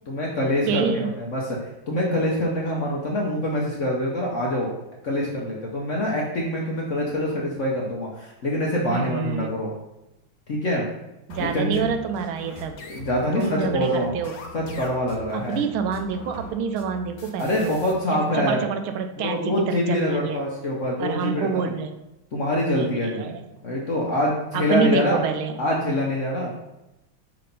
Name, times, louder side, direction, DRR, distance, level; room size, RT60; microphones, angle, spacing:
voice 1, 0.1-4.7 5.0-9.7 10.5-10.8 11.4-11.8 12.9-14.1 14.5-15.6 17.4-18.7 19.2-21.7 22.3-23.4 23.6-25.2 25.6-26.5, left 1 dB, 55° left, -3 dB, 0.9 m, -25 dB
voice 2, 0.6-1.1 8.9-9.5 11.3-12.8 13.3-14.3 15.3-17.8 18.3-20.4 21.0-21.9 22.8-23.4 24.5-25.6, right 6 dB, 85° right, 7 dB, 1.5 m, -27 dB
sound 1, 11.3-17.9, left 1 dB, 80° left, 1.7 m, -42 dB
6.3 x 2.9 x 5.2 m, 0.95 s
omnidirectional pair, 2.2 m